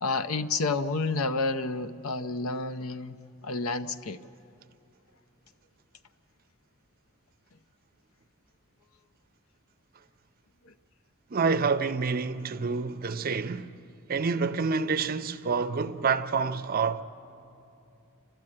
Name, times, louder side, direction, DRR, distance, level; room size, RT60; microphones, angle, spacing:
voice 1, 0.0-3.2 3.4-4.2 10.6-10.7, left 3 dB, 75° left, 0.7 m, -30 dB
voice 2, 11.3-13.8 14.1-17.0, right 5 dB, 40° right, 0.5 m, -28 dB
29.5 x 12.5 x 8.6 m
head